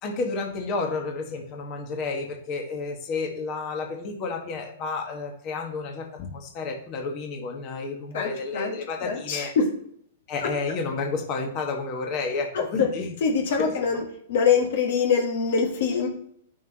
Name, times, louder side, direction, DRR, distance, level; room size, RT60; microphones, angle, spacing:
voice 1, 0.0-9.5 10.3-13.1 13.6-13.7, left 4 dB, 40° left, 2 dB, 1.4 m, -31 dB
voice 2, 8.1-8.7 9.0-9.7 12.5-12.9 13.2-14.0 14.3-16.1, left 6 dB, 60° left, 2 dB, 1.6 m, -24 dB
10.5 x 3.5 x 3.0 m, 0.67 s
hypercardioid pair, 110°, 0 cm